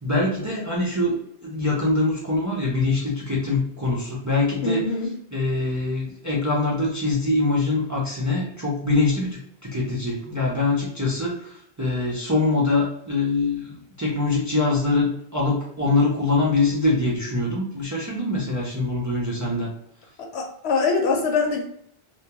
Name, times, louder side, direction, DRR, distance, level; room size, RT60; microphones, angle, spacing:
voice 1, 0.0-4.9 5.3-19.7, left 3 dB, 25° right, -5 dB, 0.4 m, -24 dB
voice 2, 4.6-5.1 20.2-21.6, left 4 dB, 90° left, 2 dB, 0.9 m, -23 dB
2.3 x 2.1 x 2.8 m, 0.71 s
omnidirectional pair, 1.1 m